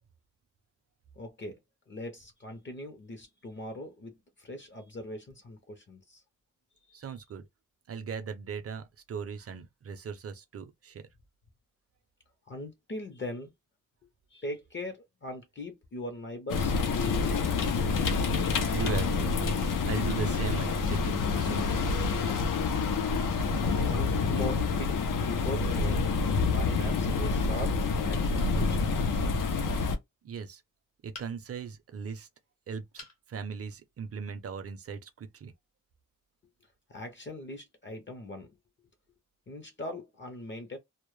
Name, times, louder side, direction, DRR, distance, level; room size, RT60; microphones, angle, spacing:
voice 1, 1.2-1.6 1.9-6.2 12.5-13.5 14.3-17.9 23.9-26.1 26.5-29.0 36.9-38.5 39.5-40.8, left 1 dB, 35° left, 0.5 m, -40 dB
voice 2, 6.9-7.4 7.9-11.1 18.7-19.4 19.8-22.4 30.2-30.6 31.0-32.3 32.7-35.5, right 6 dB, 50° right, 0.5 m, -38 dB
sound 1, 16.5-30.0, left 4 dB, 85° left, 0.5 m, -27 dB
sound 2, 31.1-31.7 33.0-33.2 33.8-33.9 34.2-34.3, left 2 dB, 55° left, 0.8 m, -47 dB
2.0 x 2.0 x 3.0 m
wide cardioid pair, 160°, 32 cm